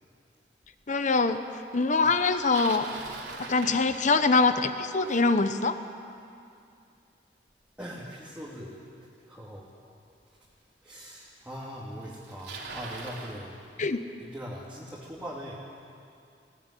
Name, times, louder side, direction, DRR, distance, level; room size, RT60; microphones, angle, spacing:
voice 1, 0.9-1.4 1.7-2.9 3.5-5.8 13.8-14.0, left 3 dB, 45° left, 9 dB, 0.9 m, -23 dB
Bicycle, 2.2-4.5 9.6-9.7 10.5-10.6 11.6-11.7 11.9-13.4, right 3 dB, 75° right, 3.2 m, -41 dB
voice 2, 7.8-8.7 9.3-9.7 10.8-13.5 14.2-15.6, equal, 5° right, -5 dB, 2.6 m, -41 dB
20.0 x 17.5 x 10.0 m, 2.5 s
head